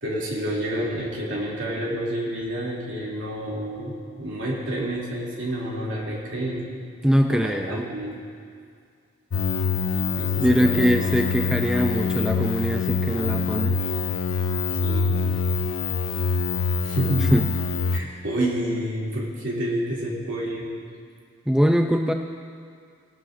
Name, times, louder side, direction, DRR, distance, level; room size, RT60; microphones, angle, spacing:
voice 1, 0.0-6.7 7.3-8.2 10.2-10.9 14.7-15.2 16.8-17.3 17.9-20.7, right 1 dB, 65° right, -5 dB, 2.7 m, -29 dB
voice 2, 7.0-7.8 10.4-13.8 17.3-17.5 21.5-22.1, equal, 5° right, 3 dB, 0.3 m, -22 dB
sound 1, 9.3-18.0, left 5 dB, 85° left, 0.5 m, -25 dB
19.0 x 12.0 x 2.6 m, 2.2 s
head